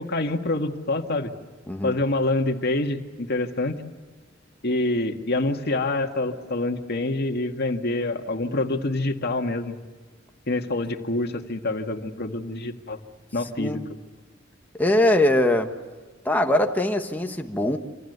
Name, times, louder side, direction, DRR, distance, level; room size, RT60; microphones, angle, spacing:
voice 1, 0.0-1.3 1.8-3.8 4.6-9.8 10.5-13.0 13.3-13.8, left 2 dB, 55° left, 5 dB, 2.0 m, -26 dB
voice 2, 1.7-2.0 13.6-13.8 14.8-15.7 16.2-17.8, left 1 dB, 10° left, 4 dB, 1.4 m, -22 dB
27.0 x 27.0 x 8.1 m, 1.4 s
head